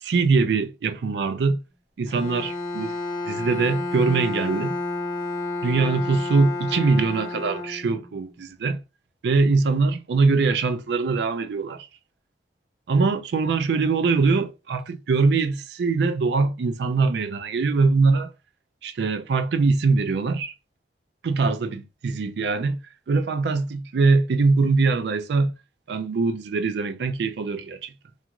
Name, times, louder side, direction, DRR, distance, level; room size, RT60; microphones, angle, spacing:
voice 1, 0.0-1.6 2.0-3.0 3.3-4.8 5.6-8.8 9.2-11.9 12.9-18.3 18.8-20.5 21.2-22.8 23.1-25.5 25.9-27.9, right 4 dB, 70° right, 0.4 m, -22 dB
Bowed string instrument, 2.1-8.2, left 2 dB, 25° left, 0.6 m, -30 dB
2.4 x 2.3 x 2.9 m
head